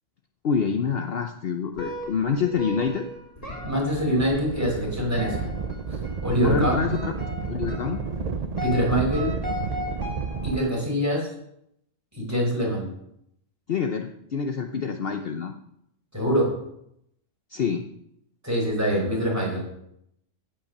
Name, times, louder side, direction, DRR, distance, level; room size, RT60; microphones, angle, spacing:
voice 1, 0.4-3.1 6.4-7.1 7.5-8.0 13.7-15.5 17.5-17.9, left 6 dB, 55° left, 6 dB, 0.9 m, -27 dB
sound 1, 1.7-10.7, left 1 dB, 30° left, 3.6 m, -37 dB
voice 2, 3.6-5.5 6.2-6.9 8.6-9.3 10.4-11.3 12.1-12.9 16.1-16.6 18.4-19.7, equal, 10° right, -3 dB, 4.8 m, -24 dB
sound 2, 3.9-10.6, right 5 dB, 45° right, 0.6 m, -31 dB
15.5 x 5.8 x 6.6 m, 0.76 s
omnidirectional pair, 1.3 m